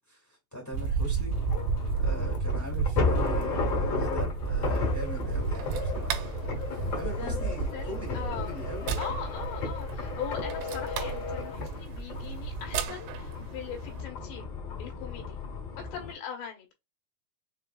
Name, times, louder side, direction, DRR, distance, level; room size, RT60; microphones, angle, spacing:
voice 1, 0.1-1.7 2.0-6.2 6.9-8.9, equal, 15° left, 0.5 m, -41 dB
sound 1, 0.7-12.7, right 5 dB, 70° right, 2.1 m, -32 dB
sound 2, 1.3-16.1, left 4 dB, 65° left, 1.6 m, -34 dB
sound 3, 4.7-14.0, right 8 dB, 90° right, 2.9 m, -41 dB
voice 2, 7.2-8.5 9.0-14.5 14.8-15.4 15.9-16.7, left 8 dB, 85° left, 3.5 m, -40 dB
7.1 x 2.6 x 2.3 m
omnidirectional pair, 4.8 m